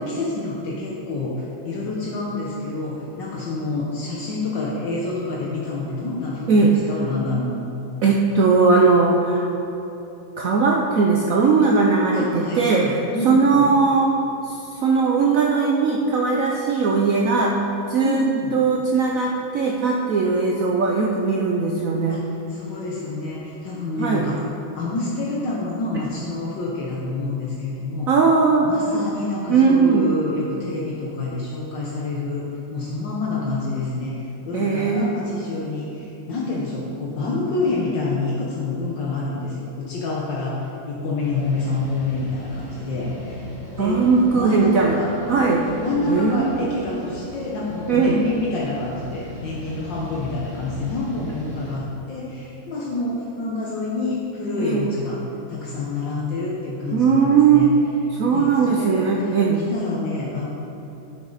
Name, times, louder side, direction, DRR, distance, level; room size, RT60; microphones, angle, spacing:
voice 1, 0.0-7.6 12.1-13.7 18.0-18.6 22.1-24.4 24.7-28.1 28.6-43.5 43.8-44.0 44.3-45.1 45.7-55.2 55.5-57.7 58.3-59.3 59.7-60.5, left 3 dB, 65° left, -4 dB, 1.6 m, -27 dB
voice 2, 8.0-9.5 10.4-14.2 14.4-18.3 18.5-22.2 24.0-24.3 28.1-28.8 29.5-30.2 34.5-35.1 43.8-45.0 45.3-45.6 46.1-46.5 47.9-48.2 54.6-54.9 56.9-57.7 58.2-59.6, right 4 dB, 75° right, -1 dB, 0.7 m, -19 dB
sound 1, 41.2-51.8, equal, 50° left, 2.5 m, -38 dB
10.5 x 6.4 x 4.0 m, 2.9 s
omnidirectional pair, 2.2 m